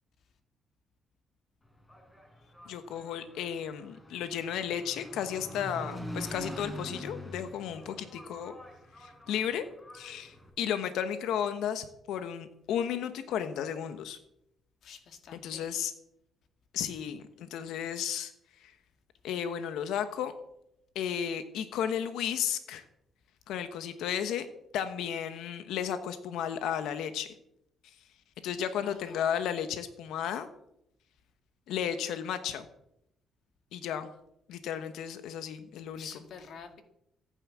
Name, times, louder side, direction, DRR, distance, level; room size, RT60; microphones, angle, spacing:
Engine, 1.7-10.5, equal, 15° left, 5.1 m, -45 dB
voice 1, 2.7-8.5 9.0-9.6 9.9-14.2 15.3-15.9 16.7-18.3 18.6-18.7 19.2-20.3 20.9-22.8 23.5-24.5 24.7-27.3 28.4-30.5 31.7-32.6 33.7-34.1 34.5-36.1, left 9 dB, 85° left, 10 dB, 1.2 m, -33 dB
voice 2, 14.8-15.7 28.8-29.4 36.0-36.8, left 6 dB, 70° left, 7 dB, 2.1 m, -48 dB
15.0 x 9.8 x 7.5 m, 0.78 s
cardioid pair, 90°, 0 cm